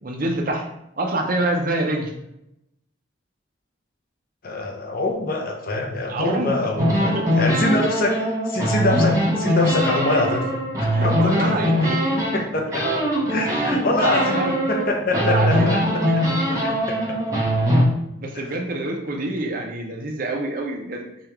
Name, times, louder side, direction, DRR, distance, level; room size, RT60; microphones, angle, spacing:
voice 1, 0.0-0.6 1.0-2.1 6.1-6.6 7.1-7.4 10.9-12.2 13.5-14.6 15.1-15.7 16.1-16.2 16.5-16.6 18.2-21.0, right 2 dB, 50° right, 1 dB, 0.6 m, -26 dB
voice 2, 4.4-10.4 10.8-11.7 12.1-12.8 13.3-16.0 16.9-17.0 18.3-18.6, left 2 dB, 50° left, 1 dB, 0.6 m, -25 dB
sound 1, 6.8-12.4 12.7-14.8 15.1-17.8, equal, 15° right, 0.9 m, -21 dB
5.0 x 2.4 x 2.9 m, 0.82 s
head